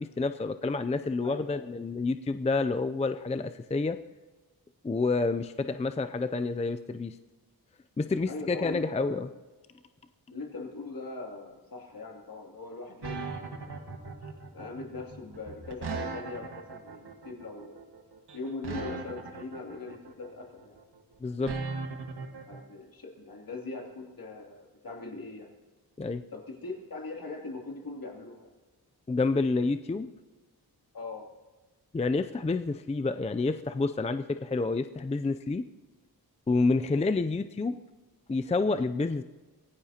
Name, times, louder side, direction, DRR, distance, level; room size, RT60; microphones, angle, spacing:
voice 1, 0.0-4.0 4.8-7.2 8.0-9.3 21.2-21.5 26.0-26.2 29.1-30.1 31.9-35.6 36.5-37.8 38.3-39.2, left 3 dB, 20° left, 10 dB, 0.4 m, -29 dB
voice 2, 1.2-1.7 8.3-9.2 10.3-13.9 14.5-17.8 18.3-20.8 22.5-25.5 26.3-28.5 30.9-31.3 36.9-37.0, left 3 dB, 60° left, 0 dB, 2.9 m, -41 dB
sound 1, 13.0-22.6, right 4 dB, 90° right, 1.7 m, -38 dB
24.5 x 16.5 x 2.9 m, 1.3 s
wide cardioid pair, 100°, 39 cm